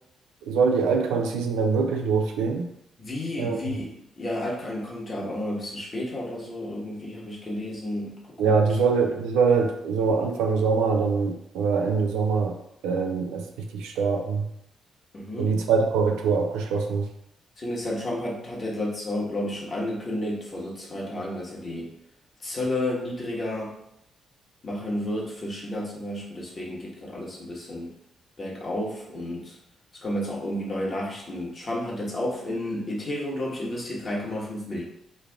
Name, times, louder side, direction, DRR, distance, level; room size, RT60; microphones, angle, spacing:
voice 1, 0.5-2.7 3.4-3.6 8.4-12.6 12.8-13.5 13.7-14.5 15.4-17.1, right 5 dB, 90° right, 4 dB, 0.4 m, -23 dB
voice 2, 3.0-8.6 15.1-15.6 17.6-21.9 22.4-23.7 24.6-27.9 28.4-29.6 30.0-34.8, left 1 dB, 45° left, -3 dB, 1.2 m, -31 dB
3.3 x 2.3 x 3.5 m, 0.80 s
supercardioid pair, 60°, 0 cm